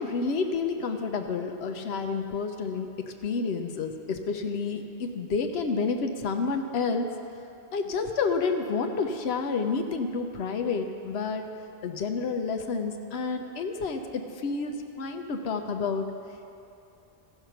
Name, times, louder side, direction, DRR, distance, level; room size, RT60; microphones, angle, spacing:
voice 1, 0.0-7.1 7.7-11.4 11.8-16.0, left 4 dB, 85° left, 5 dB, 0.9 m, -29 dB
14.0 x 5.7 x 5.8 m, 2.7 s
omnidirectional pair, 1.1 m